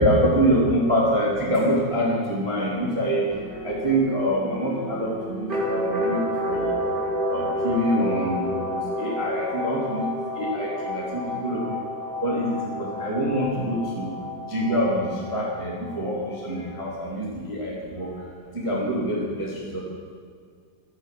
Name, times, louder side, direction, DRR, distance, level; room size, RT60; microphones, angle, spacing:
voice 1, 0.0-3.2 3.6-5.1 5.7-6.2 6.5-6.7 7.3-8.4 9.0-10.0 10.4-10.7 10.9-11.0 11.4-11.6 12.2-12.5 13.0-14.1 14.5-16.1 16.4-18.1 18.6-19.5, equal, 15° right, -4 dB, 1.0 m, -24 dB
sound 1, 3.3-16.8, left 1 dB, 75° right, 0.8 m, -30 dB
15.0 x 8.2 x 7.7 m, 2.1 s
omnidirectional pair, 5.9 m